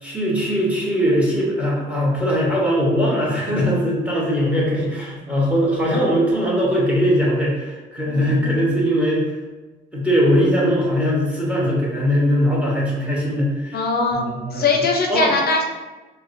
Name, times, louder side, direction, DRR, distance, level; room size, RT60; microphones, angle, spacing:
voice 1, 0.0-9.3 9.9-13.8 14.1-14.8 15.1-15.4, equal, 5° right, -4 dB, 1.2 m, -20 dB
voice 2, 8.1-8.6 13.7-14.2 14.5-15.6, left 3 dB, 50° left, 1 dB, 0.5 m, -21 dB
4.5 x 2.1 x 2.6 m, 1.2 s
cardioid pair, 90°, 20 cm